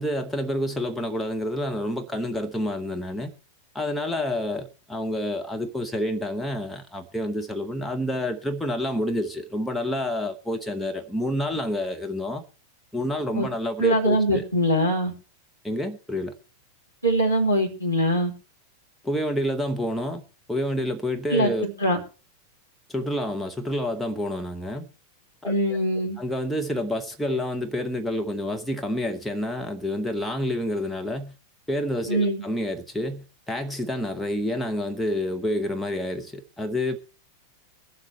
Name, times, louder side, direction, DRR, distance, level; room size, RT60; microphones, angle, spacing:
voice 1, 0.0-3.3 3.7-12.4 12.9-14.4 15.6-16.3 19.0-20.2 20.5-21.6 22.9-24.9 25.4-25.8 26.2-31.3 31.7-37.0, left 1 dB, 5° left, 1.1 m, -28 dB
voice 2, 13.8-15.1 17.0-18.3 21.3-22.0 25.4-26.2 32.1-32.4, right 1 dB, 85° left, 2.4 m, -22 dB
22.5 x 7.8 x 3.2 m
figure-of-eight pair, 90°, 0 cm